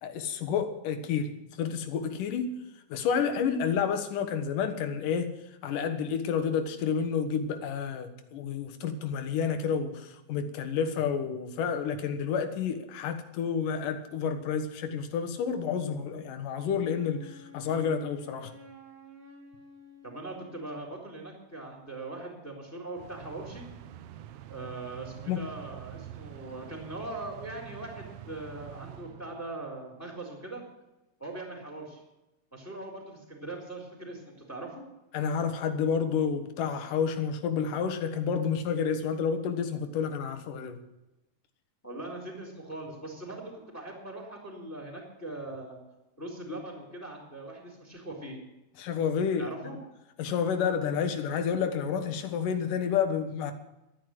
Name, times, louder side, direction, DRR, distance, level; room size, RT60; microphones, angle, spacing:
voice 1, 0.0-1.3 1.6-2.6 2.9-5.3 5.6-18.5 25.3-25.4 35.1-40.8 48.8-49.5 50.2-53.5, left 7 dB, 90° left, 8 dB, 2.9 m, -30 dB
Wind instrument woodwind instrument, 16.6-21.0, left 3 dB, 45° right, 0.7 m, -52 dB
voice 2, 20.0-23.7 24.5-30.6 31.2-32.0 32.5-34.8 41.8-45.8 46.2-48.4 49.4-49.8, right 2 dB, 5° left, 1 dB, 3.6 m, -41 dB
sound 1, 23.0-29.8, right 11 dB, 85° right, 1.3 m, -46 dB
12.5 x 9.6 x 7.7 m, 0.97 s
omnidirectional pair, 3.6 m